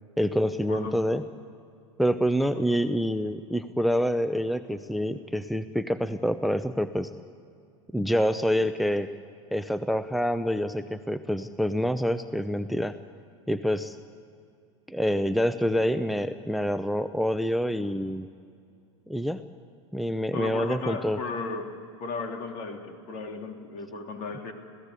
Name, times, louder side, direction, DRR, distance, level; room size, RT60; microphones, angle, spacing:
voice 1, 0.2-1.2 2.0-7.1 7.9-9.1 9.5-13.0 13.5-14.0 14.9-18.3 19.1-19.4 19.9-21.2, equal, ahead, 12 dB, 0.7 m, -27 dB
voice 2, 20.3-21.7 22.0-24.5, left 4 dB, 55° left, 4 dB, 3.1 m, -35 dB
27.0 x 17.0 x 8.3 m, 2.4 s
hypercardioid pair, 90°, 16 cm